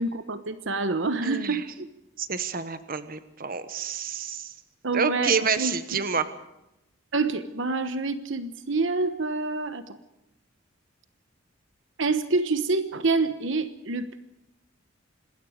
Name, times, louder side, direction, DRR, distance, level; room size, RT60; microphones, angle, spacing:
voice 1, 0.0-1.9 4.8-5.8 7.1-9.8 12.0-14.2, right 3 dB, 65° right, 10 dB, 1.1 m, -27 dB
voice 2, 1.2-1.6 2.2-4.5 4.9-6.3, right 5 dB, 45° right, 11 dB, 1.3 m, -28 dB
26.5 x 20.5 x 5.1 m, 0.89 s
head